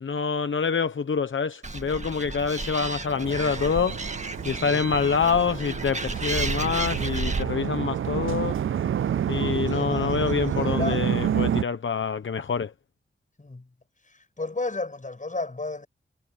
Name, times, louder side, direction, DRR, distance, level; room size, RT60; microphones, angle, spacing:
voice 1, 0.0-4.0 4.4-8.6 9.3-12.7, left 6 dB, 75° left, 0.9 m, -26 dB
Animal, 1.6-7.4, right 3 dB, 35° right, 1.8 m, -33 dB
sound 1, 3.2-11.6, right 9 dB, 85° right, 0.4 m, -29 dB
voice 2, 9.7-11.0 13.4-13.6 14.4-15.9, left 2 dB, 40° left, 6.3 m, -33 dB
wide cardioid pair, 65°, 20 cm